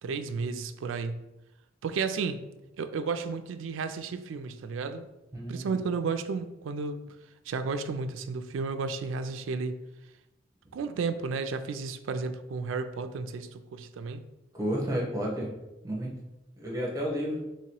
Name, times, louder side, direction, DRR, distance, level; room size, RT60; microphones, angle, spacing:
voice 1, 0.0-1.2 1.8-2.4 2.8-5.1 5.5-7.0 7.5-9.8 10.7-14.2, right 4 dB, 75° right, 9 dB, 0.3 m, -32 dB
voice 2, 5.3-5.8 14.5-15.5 15.8-16.1 16.6-17.4, equal, 15° right, -3 dB, 0.8 m, -31 dB
3.1 x 2.9 x 4.5 m, 0.97 s
head